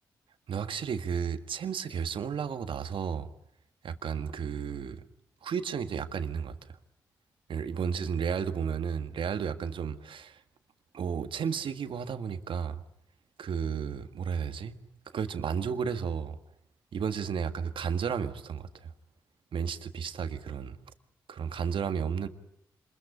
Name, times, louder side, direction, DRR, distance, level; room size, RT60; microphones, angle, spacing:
voice 1, 0.5-3.3 3.8-5.0 5.4-6.6 7.5-10.4 10.9-12.8 13.4-14.8 15.1-16.4 16.9-18.9 19.5-20.8 21.3-22.3, right 7 dB, 70° right, 1.7 m, -33 dB
26.5 x 21.5 x 9.9 m
supercardioid pair, 40°, 9 cm